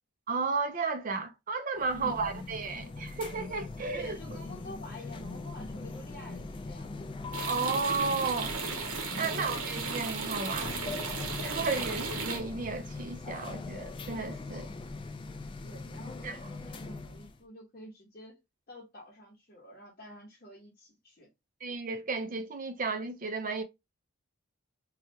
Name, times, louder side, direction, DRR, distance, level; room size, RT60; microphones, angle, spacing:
voice 1, 0.3-4.2 7.4-8.5 9.1-10.9 11.4-14.7 16.2-16.4 21.6-23.6, right 4 dB, 40° right, 0.5 m, -33 dB
sound 1, 1.8-17.4, left 3 dB, 25° left, 0.3 m, -41 dB
voice 2, 1.9-2.2 3.9-7.0 9.1-9.5 15.6-18.4 18.7-21.3, equal, 40° left, 0.9 m, -48 dB
sound 2, 7.3-12.4, right 4 dB, 80° right, 0.8 m, -35 dB
3.2 x 2.3 x 2.7 m
head